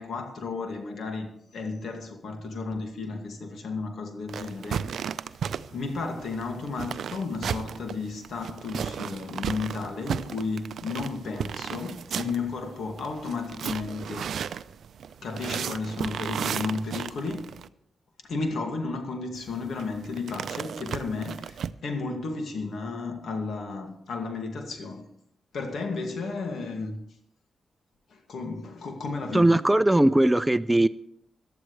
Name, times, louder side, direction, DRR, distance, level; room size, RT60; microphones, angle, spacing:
voice 1, 0.0-5.2 5.7-14.6 15.2-17.5 18.2-25.1 25.5-27.0 28.1-29.6, left 3 dB, 75° left, 2.2 m, -33 dB
sound 1, 4.3-17.7 19.3-21.7, right 8 dB, 80° right, 0.4 m, -35 dB
voice 2, 29.3-30.9, right 1 dB, 15° right, 0.5 m, -19 dB
17.5 x 12.0 x 3.3 m
cardioid pair, 55°, 0 cm